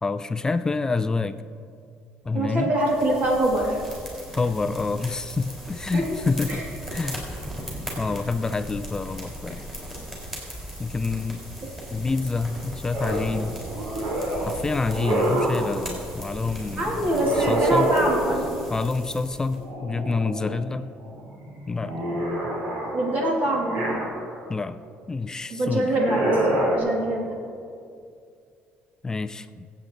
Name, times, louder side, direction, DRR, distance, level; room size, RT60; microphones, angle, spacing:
voice 1, 0.0-1.4 2.2-2.7 4.4-7.2 8.0-9.6 10.8-11.4 11.9-13.6 14.5-17.1 17.5-17.9 18.7-20.9 21.7-22.2 24.5-25.9 29.0-29.7, left 3 dB, 15° left, 11 dB, 0.4 m, -27 dB
voice 2, 2.3-3.8 5.9-6.0 6.5-6.6 16.8-18.6 22.9-24.0 25.5-26.4 26.7-27.3, right 1 dB, 40° right, -2 dB, 2.9 m, -24 dB
sound 1, 2.8-19.6, equal, 10° right, 4.3 m, -38 dB
sound 2, 12.9-15.7 17.1-18.6 19.6-20.6 21.0-24.5 25.8-26.8, right 1 dB, 65° right, 3.3 m, -27 dB
25.0 x 8.5 x 4.0 m, 2.4 s
cardioid pair, 140°, 4 cm